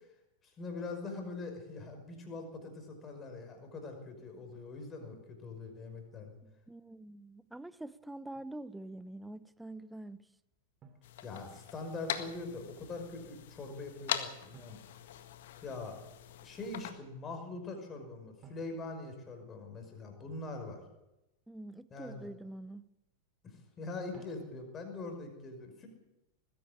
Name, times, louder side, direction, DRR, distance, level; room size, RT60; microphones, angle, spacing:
voice 1, 0.4-6.4 11.2-14.8 15.6-16.0 16.4-20.8 21.9-22.3 23.4-25.9, left 3 dB, 25° left, 5.6 m, -43 dB
voice 2, 6.4-10.3 21.5-22.8, right 1 dB, 5° right, 0.7 m, -46 dB
Drum, 8.4-8.6 10.8-12.0 14.5-15.9 18.4-20.1 24.1-25.1, right 4 dB, 30° right, 3.0 m, -60 dB
sound 1, 11.0-16.9, left 11 dB, 55° left, 1.7 m, -42 dB
20.5 x 15.5 x 8.9 m
figure-of-eight pair, 90°, 0 cm